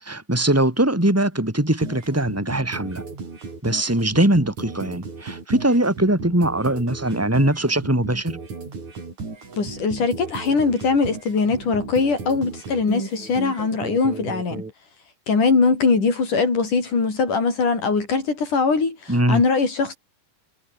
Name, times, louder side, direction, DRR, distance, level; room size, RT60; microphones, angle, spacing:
voice 1, 0.0-3.0 3.6-8.4 19.1-19.4, right 1 dB, 5° right, 6.5 m, -21 dB
sound 1, 1.8-14.7, right 4 dB, 45° right, 7.2 m, -35 dB
voice 2, 9.6-14.6 15.3-20.0, left 4 dB, 50° left, 7.5 m, -21 dB
omnidirectional pair, 4.6 m